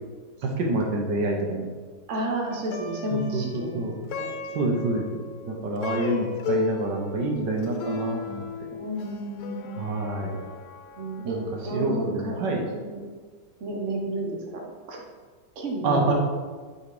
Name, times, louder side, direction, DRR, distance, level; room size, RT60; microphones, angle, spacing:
voice 1, 0.4-1.6 3.1-4.0 4.5-8.4 9.8-10.4 11.2-11.4 11.7-12.6 15.8-16.1, right 2 dB, 80° right, 0 dB, 1.8 m, -27 dB
voice 2, 2.1-4.6 8.7-9.8 11.0-12.4 12.7-13.1 13.6-15.0 15.5-16.1, right 1 dB, 45° right, -1 dB, 1.4 m, -32 dB
Plucked string instrument, 2.5-11.9, left 5 dB, 65° left, 1.1 m, -36 dB
8.5 x 4.0 x 4.9 m, 1.5 s
omnidirectional pair, 1.9 m